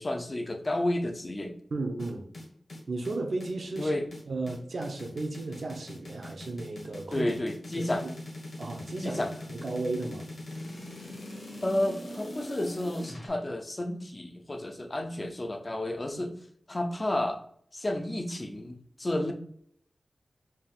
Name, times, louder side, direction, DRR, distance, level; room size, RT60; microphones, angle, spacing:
voice 1, 0.0-1.5 3.8-4.0 7.1-8.1 9.0-9.3 11.6-16.3 16.7-17.4 17.7-19.3, left 1 dB, 35° left, 4 dB, 0.6 m, -31 dB
voice 2, 1.7-2.3 2.9-3.9 4.3-7.3 7.8-8.1 8.6-9.2 9.5-10.3 16.1-16.3, right 2 dB, 75° right, 3 dB, 0.7 m, -34 dB
sound 1, 2.0-13.3, left 1 dB, 55° left, 1.4 m, -42 dB
4.3 x 3.5 x 2.5 m, 0.65 s
wide cardioid pair, 65°, 0 cm